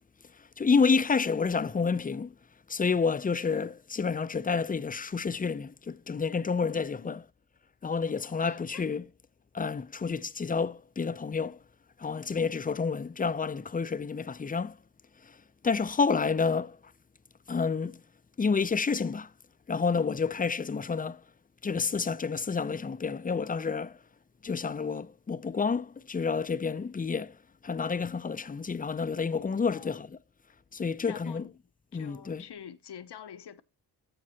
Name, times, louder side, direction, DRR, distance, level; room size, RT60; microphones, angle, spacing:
voice 1, 0.4-2.3 2.7-7.2 7.8-9.1 9.5-11.6 12.0-14.8 15.2-15.4 15.6-16.8 17.5-18.0 18.4-19.3 19.7-21.2 21.6-24.0 24.4-27.4 27.6-30.2 30.7-31.5 31.9-32.4, left 5 dB, 20° left, 0.4 m, -29 dB
voice 2, 6.6-7.2 8.3-8.8 15.6-15.8 29.7-30.0 31.1-31.5 31.9-33.6, left 9 dB, 70° left, 0.8 m, -47 dB
15.0 x 5.3 x 2.8 m
cardioid pair, 50°, 42 cm